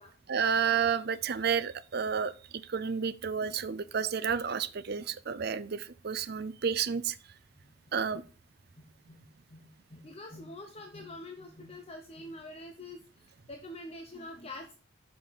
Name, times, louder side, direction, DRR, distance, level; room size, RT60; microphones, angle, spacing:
voice 1, 0.3-2.3 2.6-7.2 7.9-8.2, right 7 dB, 50° right, 0.5 m, -30 dB
voice 2, 7.6-7.9 8.8-14.7, left 1 dB, 30° left, 0.8 m, -46 dB
7.1 x 6.0 x 5.1 m
head